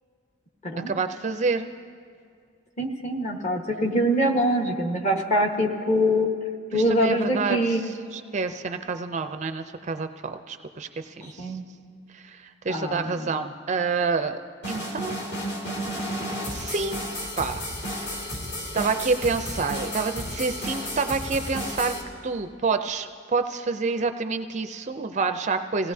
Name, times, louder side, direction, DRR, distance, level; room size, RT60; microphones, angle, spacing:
voice 1, 0.9-1.7 6.7-11.5 12.1-15.2 16.5-17.1 17.4-17.6 17.9-18.2 18.7-21.9 22.2-25.9, right 4 dB, 35° right, 8 dB, 0.4 m, -28 dB
voice 2, 2.8-6.3 6.7-7.8 11.4-11.6 12.7-13.4, equal, 35° left, 1 dB, 1.3 m, -24 dB
sound 1, 14.6-22.0, equal, 55° left, 2.4 m, -32 dB
26.0 x 17.0 x 2.7 m, 2.3 s
head